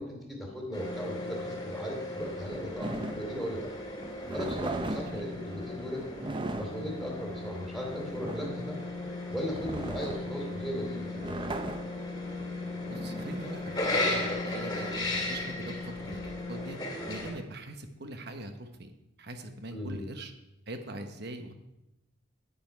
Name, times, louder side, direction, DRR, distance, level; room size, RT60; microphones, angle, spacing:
voice 1, 0.0-3.7 4.3-6.0 6.5-8.8 9.3-11.3 19.7-20.1, equal, ahead, -1 dB, 2.8 m, -37 dB
sound 1, 0.7-17.3, left 2 dB, 20° left, 2.0 m, -36 dB
sound 2, 2.8-14.2, right 2 dB, 25° right, 0.5 m, -39 dB
voice 2, 12.9-16.8 17.1-18.9 19.2-20.3 20.7-21.5, right 1 dB, 55° right, 7 dB, 1.1 m, -42 dB
10.0 x 9.6 x 4.5 m, 0.92 s
head